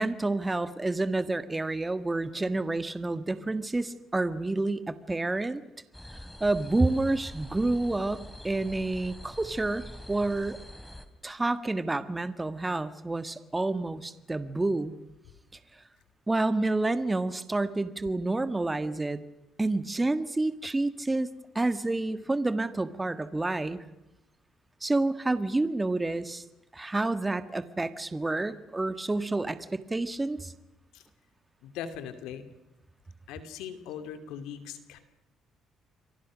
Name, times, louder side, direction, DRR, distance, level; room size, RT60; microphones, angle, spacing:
voice 1, 0.0-5.6 6.4-10.6 11.2-14.9 16.3-19.2 19.6-21.3 21.5-23.8 24.8-26.4 26.7-30.5, right 2 dB, 20° right, 12 dB, 1.7 m, -29 dB
sound 1, 5.9-11.1, left 1 dB, 5° left, 3.0 m, -45 dB
voice 2, 31.6-32.5 33.3-35.0, left 8 dB, 85° left, 9 dB, 2.7 m, -40 dB
29.0 x 23.5 x 6.4 m, 0.94 s
supercardioid pair, 75°, 0 cm